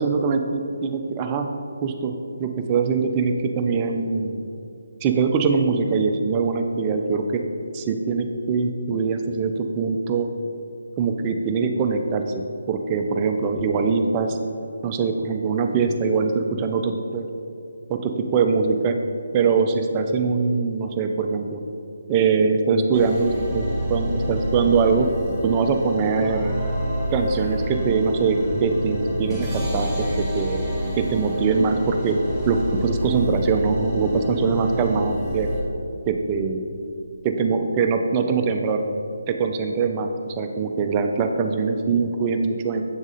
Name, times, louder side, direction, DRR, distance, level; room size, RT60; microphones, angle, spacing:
voice 1, 0.0-1.5 1.8-2.1 2.4-4.4 5.0-7.4 7.7-10.3 11.0-14.4 14.8-17.3 17.9-19.0 19.3-21.6 22.1-25.1 25.4-26.5 27.1-30.1 30.3-30.7 31.0-32.2 32.5-35.5 36.0-36.7 37.2-38.9 39.3-42.9, right 5 dB, 25° right, 4 dB, 0.4 m, -22 dB
sound 1, 22.9-35.6, equal, 5° left, 0.9 m, -28 dB
7.1 x 3.5 x 4.1 m, 2.6 s
figure-of-eight pair, 150°, 0 cm